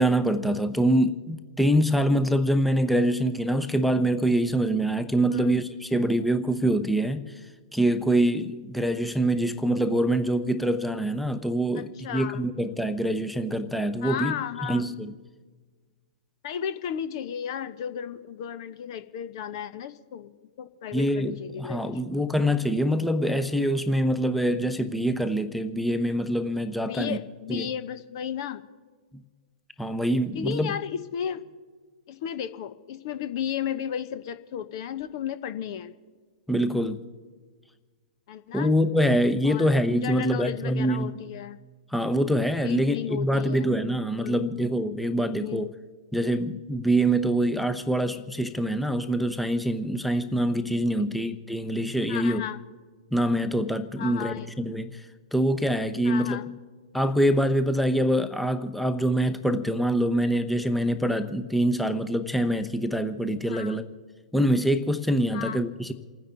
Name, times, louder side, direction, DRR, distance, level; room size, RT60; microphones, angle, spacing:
voice 1, 0.0-7.3 7.7-14.3 14.7-15.1 20.9-27.2 27.5-27.7 29.8-30.7 36.5-37.0 38.5-41.1 41.9-45.7 46.1-52.4 53.1-55.0 55.3-56.4 56.9-63.8 64.3-65.9, right 1 dB, ahead, 9 dB, 0.8 m, -25 dB
voice 2, 11.8-12.4 14.0-14.9 16.4-20.3 20.6-22.1 26.8-28.6 30.3-31.4 32.1-35.9 38.3-38.7 39.4-41.6 42.6-43.8 44.1-44.5 45.4-45.7 51.0-51.2 52.1-52.6 54.0-54.5 56.0-56.5 63.5-63.8 65.3-65.6, left 9 dB, 50° left, 12 dB, 0.9 m, -34 dB
29.0 x 10.0 x 4.0 m, 1.5 s
figure-of-eight pair, 110°, 3 cm